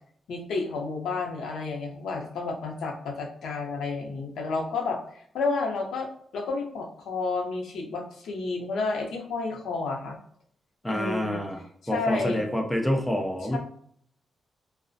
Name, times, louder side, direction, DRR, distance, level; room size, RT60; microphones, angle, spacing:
voice 1, 0.3-5.0 5.3-10.2 10.9-11.4 11.9-12.4 13.5-13.6, left 3 dB, 85° left, 1 dB, 0.5 m, -31 dB
voice 2, 10.8-11.6 11.9-13.6, equal, 10° left, 2 dB, 0.4 m, -27 dB
2.4 x 2.0 x 2.5 m, 0.63 s
wide cardioid pair, 150°, 0 cm